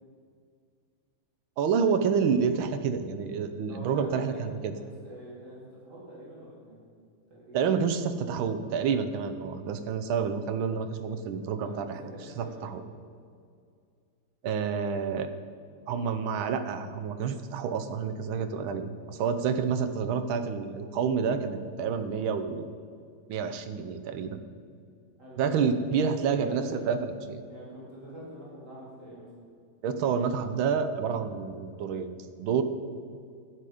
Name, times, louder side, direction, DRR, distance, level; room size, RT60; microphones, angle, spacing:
voice 1, 1.6-4.7 7.5-12.0 12.4-12.8 14.4-15.3 15.9-22.7 23.3-24.4 25.4-27.4 29.8-32.6, right 6 dB, 85° right, 9 dB, 1.6 m, -29 dB
voice 2, 3.7-6.9 7.3-7.8 11.6-12.8 25.2-25.6 26.0-27.0 27.5-29.3, right 1 dB, 55° right, -7 dB, 3.5 m, -44 dB
12.0 x 9.4 x 4.9 m, 2.2 s
omnidirectional pair, 2.2 m